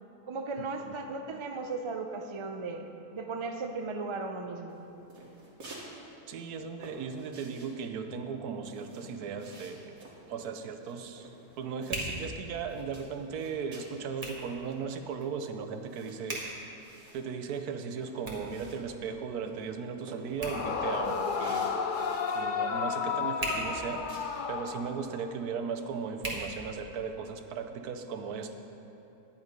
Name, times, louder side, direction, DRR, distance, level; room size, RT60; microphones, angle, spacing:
voice 1, 0.3-4.8, right 3 dB, 50° right, 5 dB, 0.3 m, -36 dB
sound 1, 4.7-5.9 6.2-12.3 12.6-14.0 14.4-14.5 14.7-19.1 19.5-19.7 20.1-22.5 22.9-23.1 23.5-24.5, right 2 dB, 65° right, 2.0 m, -51 dB
voice 2, 6.3-9.9 10.3-11.3 11.6-16.4 17.1-21.8 22.3-24.0 24.5-28.5, right 6 dB, 85° right, 7 dB, 1.3 m, -37 dB
Hands, 9.6-27.3, right 1 dB, 25° right, 1.7 m, -44 dB
Yell / Screaming, 20.4-25.3, left 5 dB, 70° left, 0.4 m, -32 dB
11.0 x 8.9 x 5.2 m, 2.9 s
omnidirectional pair, 1.6 m